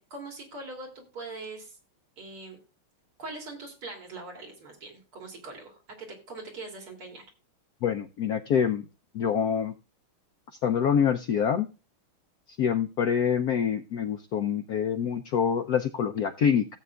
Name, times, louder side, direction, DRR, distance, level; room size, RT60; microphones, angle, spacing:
voice 1, 0.0-1.8 2.2-2.6 3.2-7.2, right 3 dB, 85° right, 1 dB, 3.8 m, -42 dB
voice 2, 7.8-8.9 9.1-9.7 10.6-11.7 12.6-16.7, left 8 dB, 75° left, 7 dB, 0.8 m, -26 dB
16.5 x 8.0 x 2.3 m, 0.31 s
omnidirectional pair, 2.3 m